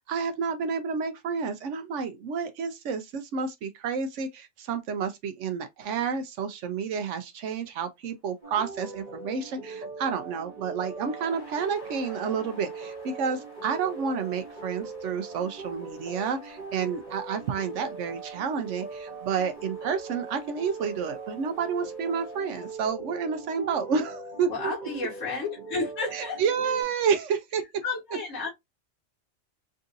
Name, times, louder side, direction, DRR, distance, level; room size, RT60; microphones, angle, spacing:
voice 1, 0.0-24.7 26.1-27.6, right 6 dB, 70° right, 0.9 m, -30 dB
sound 1, 8.1-8.2 8.4-22.7, left 1 dB, 25° left, 1.2 m, -55 dB
sound 2, 8.4-26.8, right 4 dB, 35° right, 1.0 m, -41 dB
voice 2, 24.5-26.4 27.8-28.5, left 3 dB, 70° left, 1.7 m, -32 dB
3.7 x 2.6 x 2.5 m
omnidirectional pair, 1.4 m